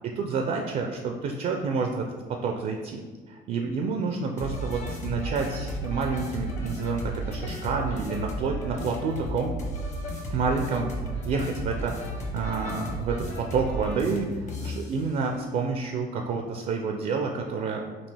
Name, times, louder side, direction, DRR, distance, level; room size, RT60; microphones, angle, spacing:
voice 1, 0.2-3.0 3.3-9.5 10.3-12.0 12.3-17.9, right 4 dB, 55° right, 2 dB, 0.4 m, -29 dB
sound 1, 4.4-15.0, equal, 45° left, 1.1 m, -33 dB
5.2 x 2.8 x 3.3 m, 1.4 s
cardioid pair, 110°, 17 cm